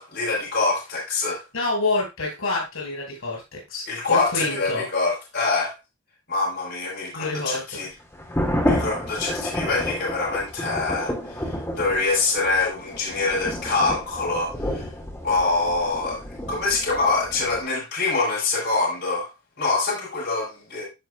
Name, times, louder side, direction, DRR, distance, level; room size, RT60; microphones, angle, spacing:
voice 1, 0.0-1.4 3.9-5.7 6.3-7.9 8.6-14.9 15.2-16.2 16.5-19.3 19.6-20.8, left 3 dB, 55° left, -5 dB, 4.7 m, -25 dB
voice 2, 1.5-4.9 7.1-7.8, left 2 dB, 90° left, 0 dB, 5.7 m, -27 dB
sound 1, 8.1-17.6, left 1 dB, 10° left, 2.2 m, -30 dB
15.0 x 5.1 x 2.4 m, 0.25 s
head